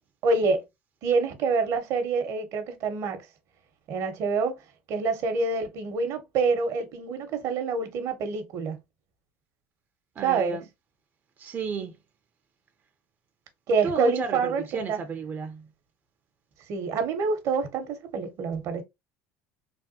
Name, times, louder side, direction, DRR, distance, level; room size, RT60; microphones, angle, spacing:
voice 1, 0.2-0.6 1.0-3.2 3.9-4.6 4.9-8.8 10.2-10.6 13.7-15.0 16.7-18.8, right 4 dB, 60° right, 0.9 m, -26 dB
voice 2, 10.2-10.6 11.4-11.9 13.8-15.7, right 5 dB, 35° right, 0.5 m, -33 dB
3.4 x 2.2 x 2.6 m
supercardioid pair, 100°, 6 cm